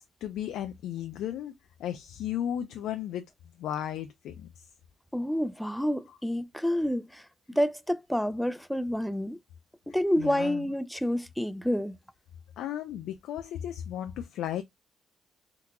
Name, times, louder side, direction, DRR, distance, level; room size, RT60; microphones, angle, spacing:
voice 1, 0.0-1.5 1.8-3.2 3.6-4.5 10.2-10.7 12.6-14.6, left 10 dB, 85° left, 0.4 m, -34 dB
voice 2, 5.1-7.2 7.6-9.4 9.9-12.0, equal, ahead, 0.4 m, -28 dB
3.6 x 2.9 x 2.3 m
cardioid pair, 90°, 0 cm